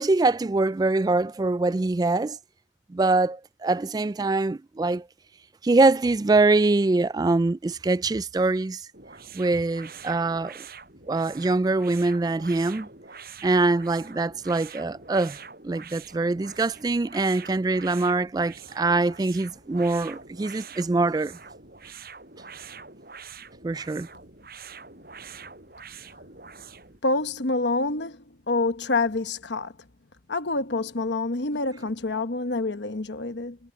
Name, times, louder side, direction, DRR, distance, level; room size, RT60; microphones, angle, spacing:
voice 1, 0.0-2.4 2.9-5.1 5.6-8.9 9.3-10.5 11.1-12.9 13.4-15.4 15.6-21.4 23.6-24.1, right 3 dB, 20° right, 0.3 m, -23 dB
sound 1, 8.9-27.0, right 5 dB, 55° right, 7.8 m, -45 dB
voice 2, 27.0-29.7 30.3-33.6, left 3 dB, 80° left, 1.2 m, -27 dB
head